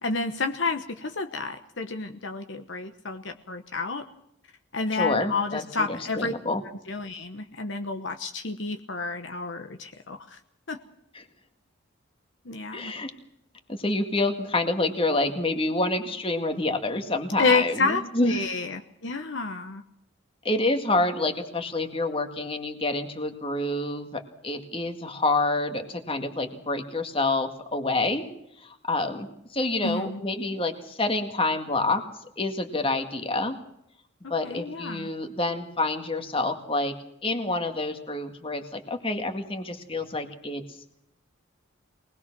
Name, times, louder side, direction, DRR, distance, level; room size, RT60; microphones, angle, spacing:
voice 1, 0.0-4.0 4.7-6.3 6.9-10.4 10.7-10.8 12.4-12.9 17.4-19.8 29.8-30.2 34.4-35.1, left 3 dB, 60° left, 6 dB, 1.1 m, -29 dB
voice 2, 4.9-6.6 11.1-11.2 12.7-13.1 13.7-18.5 20.4-28.2 28.6-32.0 32.4-33.5 34.3-36.9 37.2-40.6, left 2 dB, 25° left, 6 dB, 2.0 m, -28 dB
23.5 x 19.5 x 6.1 m, 0.80 s
head